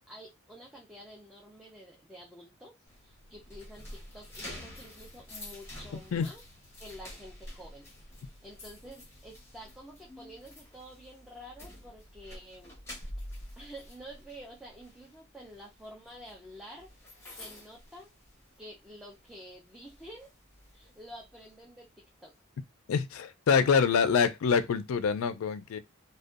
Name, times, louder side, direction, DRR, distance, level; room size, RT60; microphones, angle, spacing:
voice 1, 0.1-2.8 3.0-6.4 6.8-7.9 8.4-12.8 13.6-16.9 17.4-18.1 18.6-20.3 20.7-21.9 22.2-22.3, equal, 5° right, 0.5 m, -49 dB
sound 1, 2.9-18.8 19.1-19.4 19.9-21.5, left 1 dB, 15° left, 1.0 m, -48 dB
voice 2, 22.9-25.8, left 6 dB, 75° left, 0.4 m, -26 dB
2.6 x 2.2 x 2.4 m
head